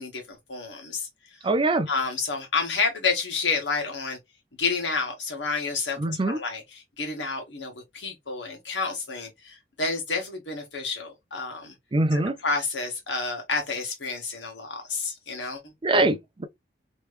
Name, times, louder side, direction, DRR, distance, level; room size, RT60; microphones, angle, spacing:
voice 1, 0.0-1.4 1.9-4.2 4.6-11.7 12.1-15.7, left 4 dB, 80° left, 1.6 m, -30 dB
voice 2, 1.4-1.9 6.0-6.4 11.9-12.4 15.8-16.5, right 2 dB, 30° right, 0.5 m, -23 dB
3.1 x 3.1 x 3.1 m
head